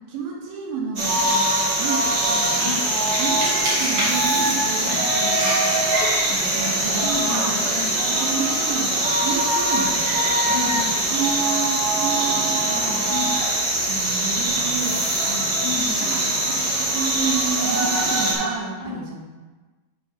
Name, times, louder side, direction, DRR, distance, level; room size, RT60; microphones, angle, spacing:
voice 1, 0.1-1.5 1.8-2.8 3.2-7.6 8.1-10.2 11.1-13.1 13.9-15.5 16.1-19.2, right 5 dB, 90° right, -1 dB, 2.9 m, -31 dB
sound 1, 1.0-18.3, right 1 dB, 45° right, 1.2 m, -23 dB
sound 2, 1.0-13.6 14.0-14.1 14.4-18.6, right 1 dB, 75° right, 1.7 m, -28 dB
voice 2, 7.0-8.3 10.5-11.1 13.1-13.4 15.6-16.3 18.8-19.0, left 5 dB, 65° left, -3 dB, 2.5 m, -32 dB
11.0 x 4.7 x 3.0 m, 1.3 s
omnidirectional pair, 4.0 m